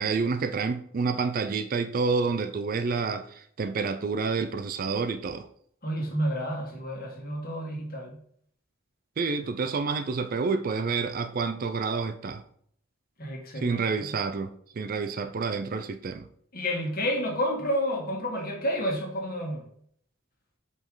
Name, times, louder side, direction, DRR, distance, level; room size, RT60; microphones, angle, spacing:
voice 1, 0.0-5.5 9.2-12.4 13.6-16.3, right 4 dB, 40° right, 0.4 m, -29 dB
voice 2, 5.8-8.2 13.2-13.8 16.5-19.6, equal, 45° left, 1.5 m, -30 dB
5.3 x 4.7 x 3.7 m
head